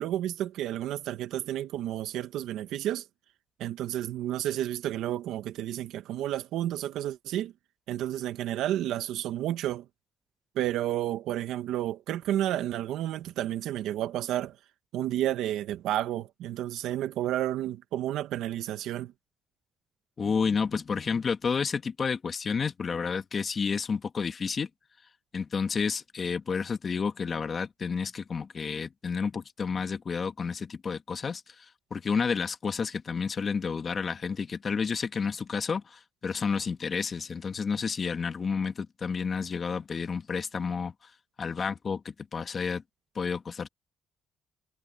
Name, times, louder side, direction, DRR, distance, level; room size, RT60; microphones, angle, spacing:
voice 1, 0.0-3.0 3.6-7.5 7.9-9.8 10.5-14.6 14.9-19.1, right 12 dB, 90° right, 1.3 m, -31 dB
voice 2, 20.2-24.7 25.3-31.4 31.9-40.9 41.4-42.8 43.1-43.7, left 5 dB, 45° left, 1.3 m, -30 dB
cardioid pair, 90°, 0 cm